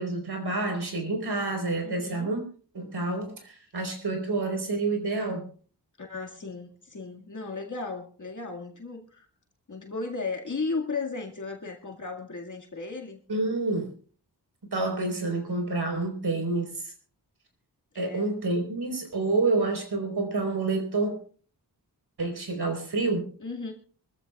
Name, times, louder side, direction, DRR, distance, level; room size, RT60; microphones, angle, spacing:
voice 1, 0.0-2.4 2.7-5.5 13.3-13.9 14.7-16.9 17.9-21.2 22.2-23.3, right 3 dB, 70° right, 4.2 m, -28 dB
voice 2, 1.8-2.3 6.0-9.3 9.7-13.2 18.0-18.4 23.4-23.7, left 4 dB, 45° left, 2.0 m, -35 dB
24.5 x 14.0 x 2.3 m
wide cardioid pair, 85°, 40 cm